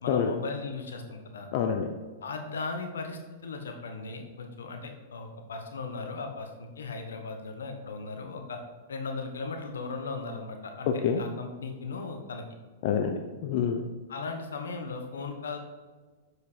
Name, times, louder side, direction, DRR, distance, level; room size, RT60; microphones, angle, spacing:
voice 1, 0.0-1.5 2.2-8.6 8.9-12.4 14.1-15.6, left 4 dB, 80° left, 5 dB, 1.4 m, -37 dB
voice 2, 1.5-1.9 10.9-11.2 12.8-13.8, left 7 dB, 55° left, 4 dB, 0.8 m, -27 dB
7.4 x 6.5 x 4.6 m, 1.4 s
hypercardioid pair, 110°, 0 cm